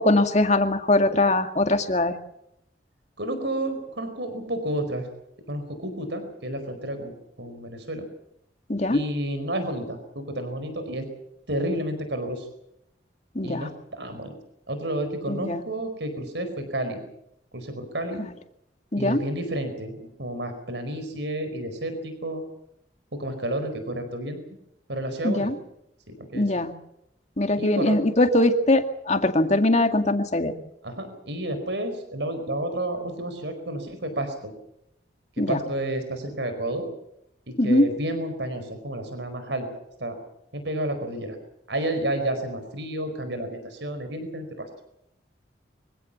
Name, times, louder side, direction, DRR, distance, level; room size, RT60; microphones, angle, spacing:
voice 1, 0.0-2.2 8.7-9.0 13.4-13.7 15.3-15.6 18.9-19.2 25.2-25.5 26.3-26.7 27.4-30.5 35.4-35.6 37.6-37.9, left 1 dB, 40° left, 7 dB, 2.1 m, -21 dB
voice 2, 3.2-5.1 5.5-8.1 8.9-11.1 11.5-12.5 13.4-14.3 14.7-17.0 17.5-18.3 19.0-22.4 23.1-24.4 24.9-25.5 26.1-26.5 27.5-28.0 30.8-34.5 35.4-36.9 37.5-39.7 40.0-40.2 40.5-41.4 41.7-44.7, right 1 dB, 75° right, 8 dB, 4.8 m, -31 dB
24.5 x 16.0 x 7.2 m, 0.79 s
head